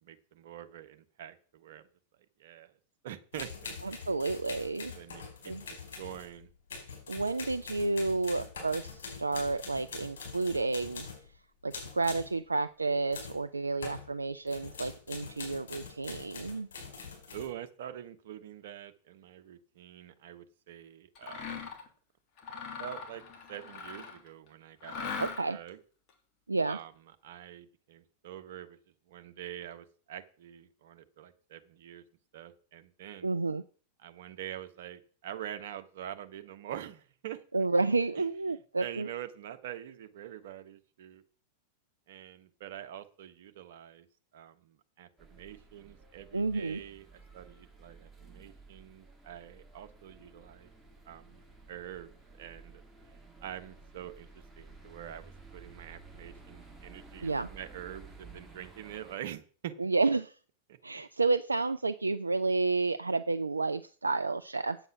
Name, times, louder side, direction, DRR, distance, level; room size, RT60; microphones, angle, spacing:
voice 1, 0.0-1.9 2.4-2.8 3.0-3.5 3.9-4.1 4.9-6.5 17.3-21.6 22.8-23.2 23.5-25.1 25.5-25.8 26.7-26.9 27.2-28.8 29.1-32.0 32.3-33.3 34.0-37.7 38.1-41.2 42.1-44.1 44.3-50.7 51.1-51.4 51.7-52.8 53.1-54.3 54.6-59.8 60.7-61.0, right 11 dB, 60° right, 9 dB, 1.1 m, -45 dB
sound 1, 3.3-11.3 11.7-12.3 13.1-13.4 13.8-14.1 14.5-17.5, left 5 dB, 65° left, 5.0 m, -44 dB
voice 2, 4.1-4.9 5.5-5.6 7.1-11.1 11.6-16.7 25.2-25.6 26.5-26.8 33.2-33.6 37.5-39.1 46.3-46.8 57.2-57.5 59.8-60.3 60.8-64.8, right 3 dB, 85° right, 12 dB, 0.4 m, -30 dB
Mechanisms, 21.1-21.9 22.4-24.3 24.8-25.7, left 5 dB, 40° left, 2.7 m, -40 dB
sound 2, 45.2-59.2, right 3 dB, 5° right, 2.5 m, -54 dB
9.0 x 7.8 x 6.0 m, 0.42 s
figure-of-eight pair, 95°, 0 cm